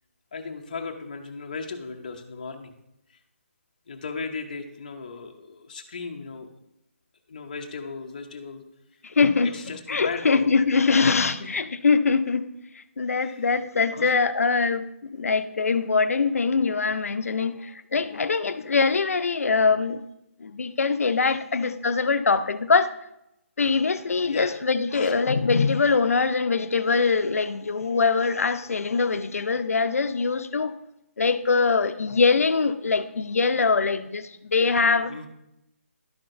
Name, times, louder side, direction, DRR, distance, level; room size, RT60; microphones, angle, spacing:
voice 1, 0.3-2.7 3.1-3.2 3.9-6.5 7.3-8.6 9.4-11.1 11.4-11.5 13.2-13.5 13.9-14.2 24.2-24.5 24.9-25.1 35.1-35.3, left 4 dB, 30° left, 0.6 m, -36 dB
voice 2, 9.0-9.5 9.9-12.5 12.8-20.0 20.4-22.9 23.6-30.7 31.2-35.1, left 4 dB, 75° left, 0.6 m, -23 dB
11.5 x 5.7 x 2.6 m
hypercardioid pair, 175°, 8 cm